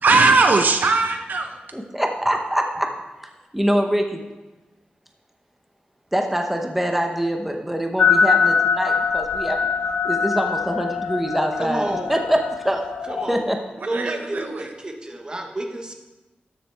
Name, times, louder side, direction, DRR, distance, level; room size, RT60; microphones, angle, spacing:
voice 1, 0.0-1.6 13.9-14.7, right 3 dB, 65° right, 5 dB, 0.8 m, -19 dB
voice 2, 1.7-2.9 3.5-4.2 6.1-9.6 10.0-12.8 13.3-13.6, equal, 5° right, 3 dB, 0.8 m, -24 dB
sound 1, 8.0-13.4, left 6 dB, 90° left, 0.4 m, -22 dB
voice 3, 11.6-12.1 13.1-13.4 13.8-15.9, right 1 dB, 25° right, 3 dB, 1.1 m, -30 dB
13.0 x 7.4 x 3.4 m, 1.1 s
wide cardioid pair, 150°, 3 cm